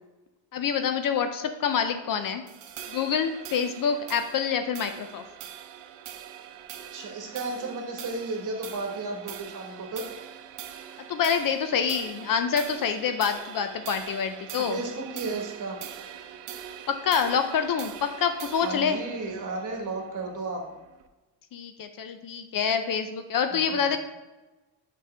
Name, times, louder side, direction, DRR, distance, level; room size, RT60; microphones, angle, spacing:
voice 1, 0.5-2.4 2.9-5.2 11.1-14.8 16.9-19.0 21.5-24.0, left 7 dB, 50° left, 8 dB, 0.5 m, -26 dB
sound 1, 2.5-21.1, right 10 dB, 70° right, 0.7 m, -43 dB
voice 2, 6.9-10.1 14.7-15.8 18.6-20.6, right 3 dB, 45° right, 1 dB, 1.5 m, -33 dB
6.3 x 5.3 x 3.3 m, 1.1 s
cardioid pair, 120°, 44 cm